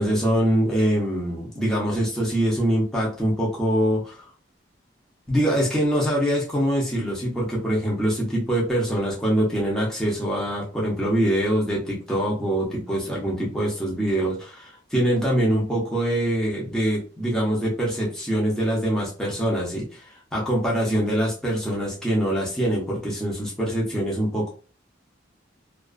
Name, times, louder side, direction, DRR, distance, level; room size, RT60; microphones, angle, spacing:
voice 1, 0.0-4.2 5.3-24.5, equal, 5° left, -5 dB, 0.6 m, -24 dB
2.4 x 2.3 x 2.3 m, 0.36 s
head